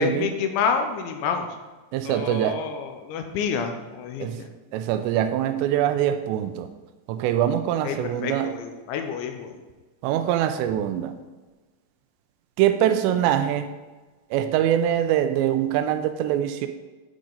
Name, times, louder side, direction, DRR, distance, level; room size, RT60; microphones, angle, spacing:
voice 1, 0.0-1.5 2.0-4.5 7.8-9.5, left 6 dB, 90° left, 5 dB, 3.0 m, -28 dB
voice 2, 1.9-2.5 4.2-4.4 4.7-6.7 7.1-8.5 10.0-11.2 12.6-13.7 14.3-16.7, right 10 dB, 85° right, 8 dB, 2.6 m, -23 dB
8.7 x 4.9 x 3.9 m, 1.2 s
omnidirectional pair, 5.3 m